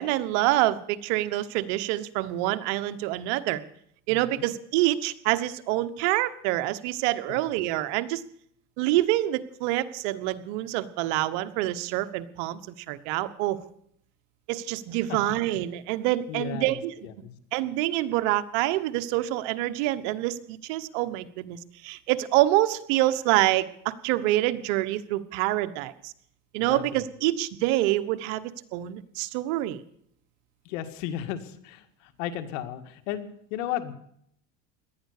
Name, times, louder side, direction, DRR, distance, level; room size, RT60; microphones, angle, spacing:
voice 1, 0.0-3.6 4.1-8.2 8.8-12.6 12.9-13.6 14.5-16.9 17.5-26.1 26.5-29.8, right 15 dB, 65° right, 12 dB, 1.3 m, -26 dB
voice 2, 4.1-4.5 7.3-7.4 15.1-15.3 16.3-17.4 26.7-26.8 30.7-33.9, left 11 dB, 75° left, 8 dB, 2.0 m, -35 dB
18.0 x 12.0 x 6.7 m, 0.68 s
supercardioid pair, 135°, 38 cm